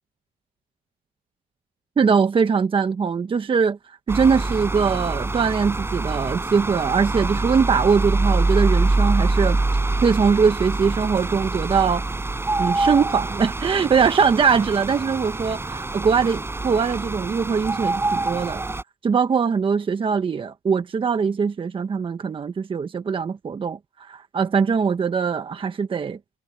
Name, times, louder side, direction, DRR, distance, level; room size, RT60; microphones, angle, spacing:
voice 1, 2.0-3.8 4.1-9.6 10.0-12.0 12.6-18.6 19.0-26.2, right 6 dB, 30° right, 1.2 m, -21 dB
sound 1, 4.1-18.8, right 2 dB, 15° right, 5.3 m, -25 dB
cardioid pair, 110°, 17 cm